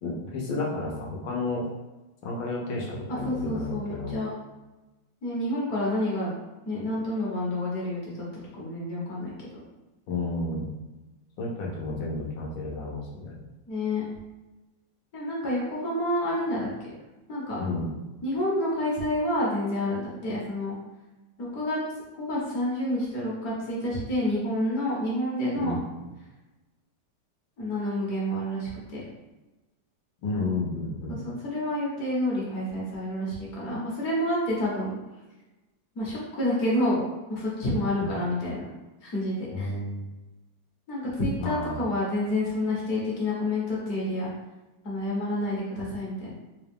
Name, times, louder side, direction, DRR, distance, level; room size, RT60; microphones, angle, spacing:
voice 1, 0.0-1.7 2.2-4.2 10.1-10.7 11.4-13.4 17.6-17.9 25.6-25.8 30.2-31.2 38.0-38.1 39.5-40.1 41.4-41.8, left 2 dB, 75° left, -2 dB, 1.5 m, -31 dB
voice 2, 3.1-4.3 5.2-6.3 6.7-8.2 8.5-9.5 13.7-14.0 15.1-16.9 17.3-17.6 18.2-20.7 21.4-21.8 22.2-25.7 27.6-29.0 31.1-35.0 36.0-37.0 37.3-38.7 39.0-39.7 40.9-44.3 44.8-46.3, left 1 dB, 55° left, -5 dB, 1.3 m, -29 dB
3.9 x 2.3 x 3.4 m, 1.1 s
omnidirectional pair, 2.1 m